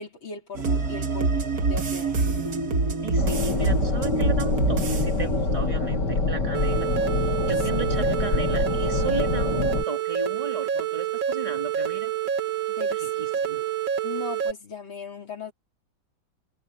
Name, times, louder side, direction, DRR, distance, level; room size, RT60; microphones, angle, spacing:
voice 1, 0.0-1.4 1.7-2.2 12.7-13.5 14.0-15.5, left 5 dB, 75° left, 4.9 m, -38 dB
sound 1, 0.5-6.6 7.0-7.1, right 3 dB, 50° right, 2.3 m, -26 dB
voice 2, 3.0-6.9 7.5-12.1 13.0-13.7, right 3 dB, 15° right, 3.1 m, -35 dB
sound 2, 3.2-9.8, left 3 dB, 60° left, 3.1 m, -26 dB
sound 3, 6.5-14.5, right 9 dB, 75° right, 3.2 m, -28 dB
omnidirectional pair, 2.1 m